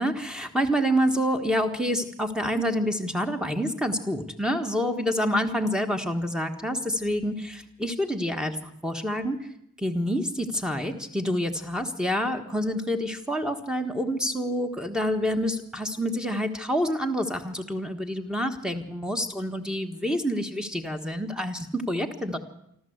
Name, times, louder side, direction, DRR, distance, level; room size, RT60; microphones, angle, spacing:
voice 1, 0.0-9.5 9.8-22.4, equal, 5° right, 7 dB, 1.5 m, -27 dB
26.5 x 13.0 x 8.0 m, 0.77 s
head